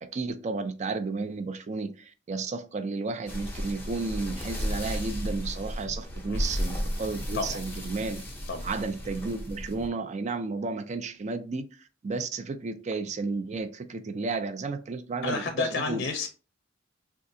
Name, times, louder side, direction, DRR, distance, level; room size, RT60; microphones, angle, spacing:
voice 1, 0.0-8.2 8.6-11.7 12.0-16.0, right 3 dB, 40° right, 0.4 m, -32 dB
sound 1, 3.3-9.9, equal, 10° left, 0.6 m, -34 dB
voice 2, 15.2-16.3, left 4 dB, 60° left, 0.5 m, -30 dB
3.5 x 2.4 x 2.6 m
head